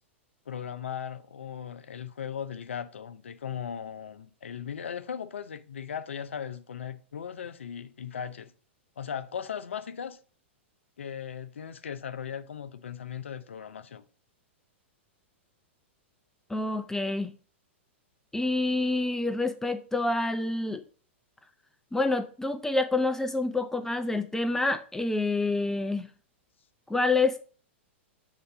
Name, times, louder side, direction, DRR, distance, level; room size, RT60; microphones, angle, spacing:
voice 1, 0.5-8.5 9.0-10.2 11.0-14.0, left 8 dB, 75° left, 0.6 m, -38 dB
voice 2, 16.5-17.3 18.3-20.8 21.9-26.1 26.9-27.4, left 2 dB, 5° left, 0.5 m, -27 dB
6.6 x 3.7 x 4.8 m
figure-of-eight pair, 105°, 7 cm